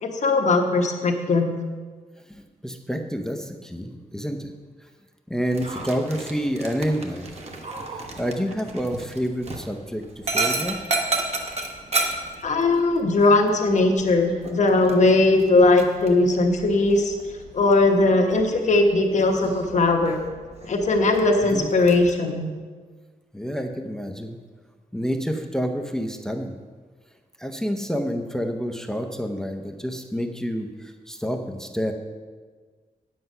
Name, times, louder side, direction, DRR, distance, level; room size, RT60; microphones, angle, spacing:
voice 1, 0.0-1.6 12.4-17.1 17.5-20.2 20.6-22.5, left 2 dB, 50° left, 3 dB, 1.1 m, -19 dB
voice 2, 2.3-4.5 5.3-7.3 8.0-10.8 21.4-21.7 23.3-24.4 24.9-26.5 27.4-31.9, equal, 5° left, 5 dB, 0.6 m, -28 dB
Dog, 5.5-22.1, right 3 dB, 45° right, 1.1 m, -33 dB
9.2 x 7.7 x 5.5 m, 1.5 s
wide cardioid pair, 165°, 15 cm